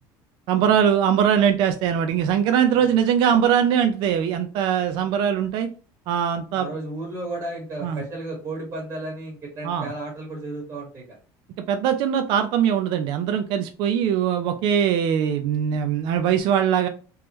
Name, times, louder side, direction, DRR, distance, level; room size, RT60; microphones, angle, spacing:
voice 1, 0.5-5.7 6.1-6.7 7.8-8.0 9.6-9.9 11.7-16.9, right 8 dB, 65° right, 7 dB, 0.4 m, -21 dB
voice 2, 6.5-11.0, right 2 dB, 35° right, -2 dB, 1.5 m, -33 dB
3.6 x 3.0 x 3.0 m, 0.37 s
cardioid pair, 130°, 9 cm